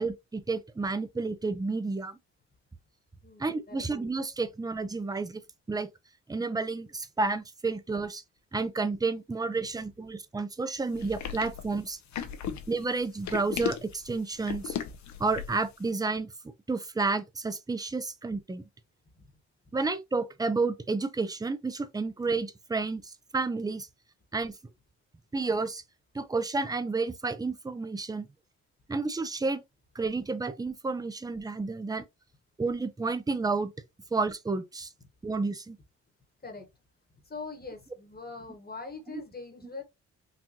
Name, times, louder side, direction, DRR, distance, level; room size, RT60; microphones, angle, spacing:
voice 1, 0.0-2.2 3.4-5.4 5.7-5.9 6.3-8.2 8.5-12.0 12.7-14.7 15.2-16.3 16.7-18.6 19.7-23.9 24.3-24.5 25.3-25.8 26.1-28.3 28.9-29.6 29.9-32.0 32.6-33.7 34.1-34.9 35.2-35.8, right 3 dB, 15° right, 0.6 m, -31 dB
voice 2, 3.2-3.9 12.3-12.6 19.2-19.3 36.4-36.7 37.2-39.8, left 3 dB, 30° left, 1.3 m, -42 dB
sound 1, 11.0-15.7, left 8 dB, 70° left, 0.7 m, -36 dB
4.0 x 2.5 x 2.9 m
supercardioid pair, 60°, 30 cm